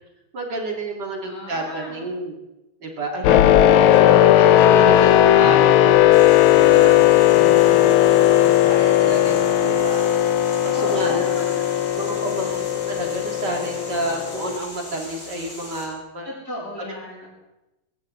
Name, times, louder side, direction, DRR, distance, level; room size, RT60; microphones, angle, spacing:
voice 1, 0.3-2.3 2.8-3.5 3.9-6.1 6.5-7.1 7.3-10.2 10.6-11.4 12.0-16.3, right 2 dB, 50° right, 1 dB, 3.0 m, -30 dB
voice 2, 1.2-2.1 10.7-11.4 12.4-12.6 16.2-17.3, left 1 dB, 5° left, -11 dB, 7.4 m, -34 dB
sound 1, 3.2-14.6, left 12 dB, 80° left, 1.6 m, -16 dB
sound 2, 6.1-15.9, left 1 dB, 65° left, 7.7 m, -39 dB
21.5 x 15.5 x 3.8 m, 0.98 s
omnidirectional pair, 2.3 m